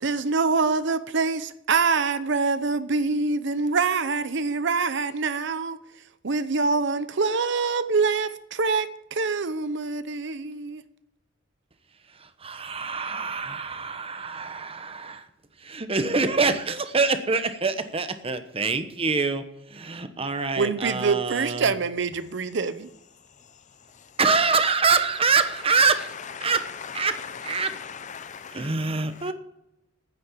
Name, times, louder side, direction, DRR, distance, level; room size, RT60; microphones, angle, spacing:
voice 1, 0.0-5.8 6.2-10.8 20.6-22.9, right 4 dB, 65° right, 0.8 m, -25 dB
voice 2, 12.2-15.2 15.7-19.4 19.7-21.7 24.2-26.1 26.4-26.6 26.9-27.2 27.4-27.7 28.5-29.3, right 4 dB, 30° right, 1.0 m, -25 dB
voice 3, 26.0-28.7 29.2-29.3, left 7 dB, 40° left, 0.6 m, -39 dB
9.6 x 8.6 x 8.5 m
head